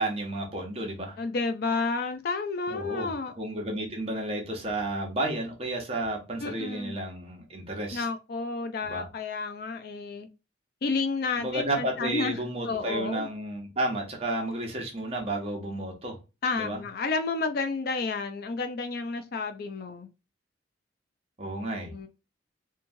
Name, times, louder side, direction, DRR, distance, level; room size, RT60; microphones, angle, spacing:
voice 1, 0.0-1.2 2.7-3.1 3.4-8.0 8.8-9.1 11.4-16.2 16.6-16.8 21.4-21.9, right 1 dB, 30° right, 0.8 m, -32 dB
voice 2, 1.2-3.3 6.4-6.9 7.9-10.3 10.8-12.4 12.7-13.3 16.4-20.1 21.8-22.1, left 4 dB, 50° left, 0.4 m, -31 dB
3.0 x 2.3 x 2.6 m
head